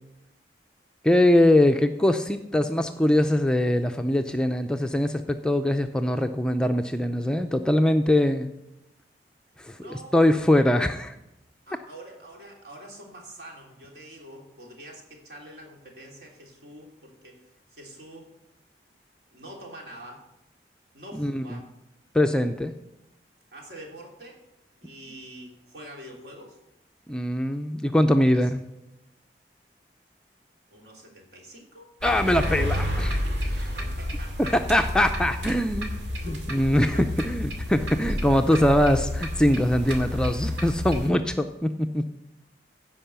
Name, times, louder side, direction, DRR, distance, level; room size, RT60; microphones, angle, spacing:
voice 1, 1.0-8.5 9.6-11.2 21.1-21.6 22.1-22.7 27.1-28.6 32.0-33.2 34.5-35.9 36.2-37.0 37.2-42.0, left 1 dB, 5° left, 6 dB, 0.4 m, -22 dB
voice 2, 9.8-10.2 11.7-17.4 17.7-18.3 19.3-20.2 20.9-21.7 23.5-24.4 24.8-26.6 28.3-28.5 30.7-31.9 33.5-34.5 36.1-36.4 36.7-37.0 38.0-38.6 39.8-39.9, right 1 dB, 65° right, 0 dB, 3.0 m, -45 dB
sound 1, 32.0-41.1, left 1 dB, 90° right, 2.2 m, -30 dB
16.0 x 5.4 x 6.8 m, 0.91 s
head